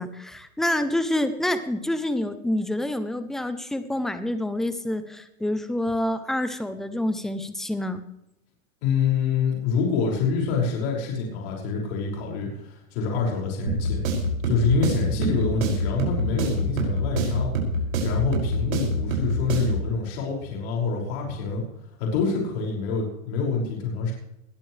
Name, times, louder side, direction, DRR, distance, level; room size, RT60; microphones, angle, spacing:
voice 1, 0.0-8.0, left 1 dB, ahead, 10 dB, 0.4 m, -27 dB
voice 2, 8.8-14.0 14.4-17.5 18.0-21.6 22.0-24.1, left 5 dB, 50° left, -1 dB, 5.7 m, -26 dB
sound 1, 13.7-19.9, right 1 dB, 75° right, 6.1 m, -26 dB
21.0 x 13.5 x 3.2 m, 0.83 s
supercardioid pair, 150°, 41 cm